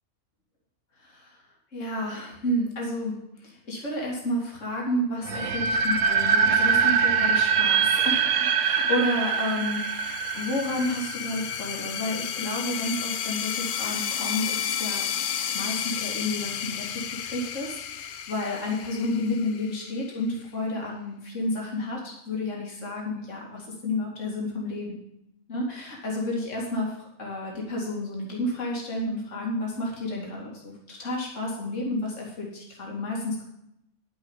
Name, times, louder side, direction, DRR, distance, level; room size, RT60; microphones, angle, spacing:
voice 1, 1.0-1.4 1.7-25.0 25.5-33.4, left 1 dB, 55° left, -3 dB, 2.9 m, -31 dB
sound 1, 5.3-12.1, right 6 dB, 70° right, 1.2 m, -24 dB
sound 2, 8.9-20.1, left 9 dB, 85° left, 0.4 m, -32 dB
11.0 x 7.1 x 7.2 m, 0.81 s
omnidirectional pair, 1.6 m